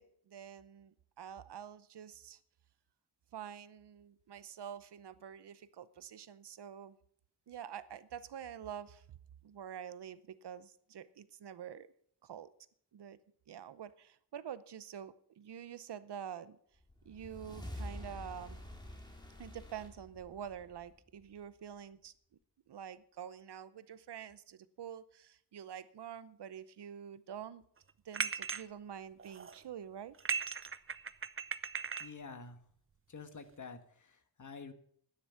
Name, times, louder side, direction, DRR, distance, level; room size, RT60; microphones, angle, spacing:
voice 1, 0.0-2.4 3.3-7.0 7.5-9.0 9.4-11.9 12.2-12.5 12.9-13.2 13.5-16.6 17.0-18.6 19.4-22.1 22.7-27.6 28.0-30.2, right 9 dB, 90° right, 16 dB, 0.7 m, -47 dB
sound 1, 16.8-21.4, left 1 dB, 10° left, 2.2 m, -47 dB
sound 2, 28.1-28.6 29.2-29.6 30.1-32.1, right 6 dB, 35° right, 0.6 m, -37 dB
voice 2, 32.0-32.6 33.1-34.7, left 4 dB, 50° left, 9 dB, 1.3 m, -49 dB
12.0 x 10.0 x 5.7 m, 0.64 s
wide cardioid pair, 105°, 39 cm